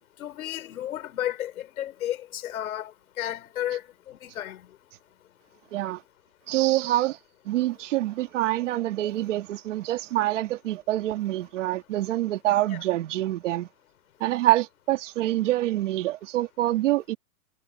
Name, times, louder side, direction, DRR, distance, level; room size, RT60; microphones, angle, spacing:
voice 1, 0.2-2.9 3.2-3.8 4.1-4.6 12.7-12.8, left 12 dB, 60° left, 4.0 m, -32 dB
voice 2, 5.7-6.0 6.5-7.2 7.4-13.7 14.2-17.2, right 15 dB, 50° right, 2.4 m, -26 dB
hypercardioid pair, 155°, 47 cm